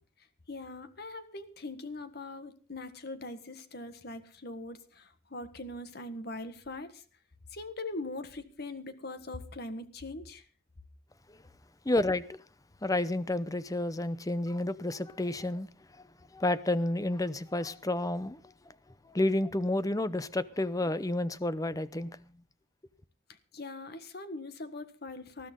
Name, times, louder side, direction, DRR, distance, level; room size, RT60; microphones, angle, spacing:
voice 1, 0.5-7.0 7.5-10.4 23.5-25.5, left 2 dB, 55° left, 1.6 m, -41 dB
voice 2, 11.9-12.4 12.8-15.7 16.3-18.4 19.1-22.1, left 1 dB, 20° left, 0.7 m, -30 dB
20.0 x 13.5 x 3.8 m
head